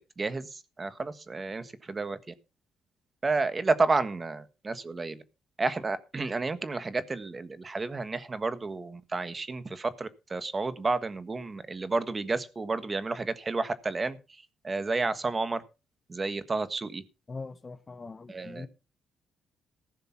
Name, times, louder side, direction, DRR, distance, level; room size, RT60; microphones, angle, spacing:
voice 1, 0.2-2.3 3.2-5.2 5.6-14.2 14.6-15.6 16.1-17.0 18.3-18.7, right 3 dB, 30° right, 1.5 m, -31 dB
voice 2, 17.3-18.7, left 3 dB, 30° left, 1.5 m, -41 dB
15.0 x 6.7 x 5.9 m
cardioid pair, 90°, 0 cm